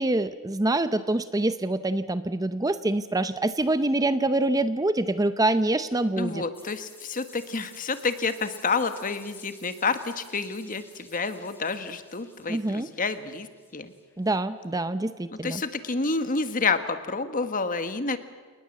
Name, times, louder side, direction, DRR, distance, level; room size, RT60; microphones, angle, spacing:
voice 1, 0.0-6.4 12.5-12.9 14.2-15.6, right 2 dB, 15° right, 12 dB, 0.6 m, -25 dB
voice 2, 6.2-13.5 13.7-13.9 15.4-18.2, left 4 dB, 40° left, 10 dB, 1.5 m, -29 dB
sound 1, 6.5-14.3, left 3 dB, 10° left, 3.6 m, -53 dB
29.5 x 19.5 x 7.5 m, 1.5 s
head